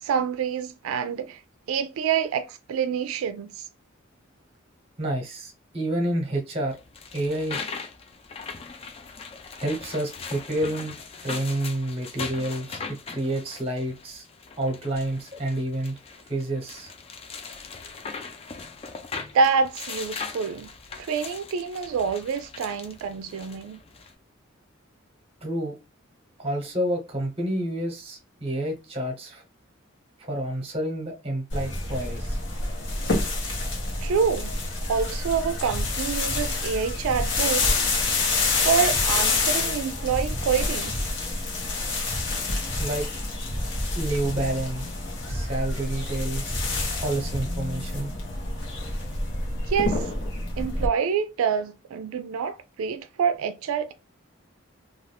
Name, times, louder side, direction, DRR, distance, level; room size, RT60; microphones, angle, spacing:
voice 1, 0.0-1.4 1.7-3.6 19.3-20.7 21.0-23.8 34.0-34.5 34.9-37.8 38.6-40.9 49.7-50.1 50.6-53.9, right 6 dB, 90° right, 0.3 m, -26 dB
voice 2, 5.0-6.8 7.1-7.7 9.6-10.9 11.2-14.2 14.6-16.0 16.3-16.9 25.4-25.8 26.4-29.4 30.2-32.4 42.8-43.1 43.9-44.8 45.3-46.6 47.0-48.1, right 1 dB, 30° right, 0.9 m, -29 dB
sound 1, 6.7-24.1, left 5 dB, 30° left, 0.3 m, -40 dB
sound 2, 31.5-50.9, left 2 dB, 60° left, 0.9 m, -27 dB
2.5 x 2.4 x 3.2 m
head